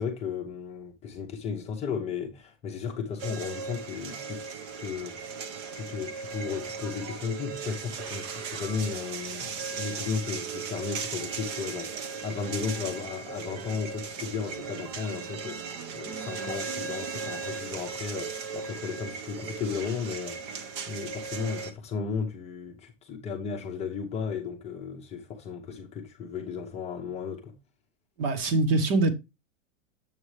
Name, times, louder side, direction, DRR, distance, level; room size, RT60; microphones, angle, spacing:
voice 1, 0.0-5.2 5.7-27.6, left 6 dB, 15° left, 0.7 m, -35 dB
sound 1, 3.2-21.7, right 5 dB, 25° right, 0.3 m, -37 dB
voice 2, 28.2-29.1, right 3 dB, 50° right, 1.2 m, -23 dB
7.2 x 6.2 x 3.1 m
supercardioid pair, 155°, 38 cm